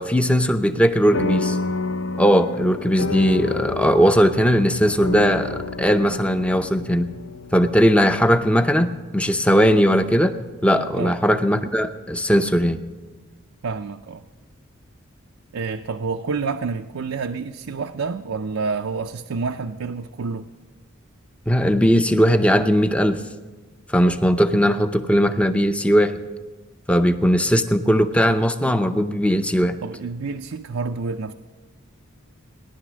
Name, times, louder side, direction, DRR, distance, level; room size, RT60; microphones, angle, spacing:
voice 1, 0.0-1.6 2.2-7.1 7.5-10.4 10.6-12.8 21.5-23.2 23.9-26.2 26.9-29.8, equal, 5° left, 8 dB, 0.6 m, -18 dB
sound 1, 1.1-9.9, left 3 dB, 70° left, 0.8 m, -30 dB
voice 2, 13.6-14.2 15.5-20.5 29.8-31.3, right 4 dB, 75° right, 5 dB, 0.5 m, -28 dB
18.0 x 11.0 x 6.2 m, 1.3 s
head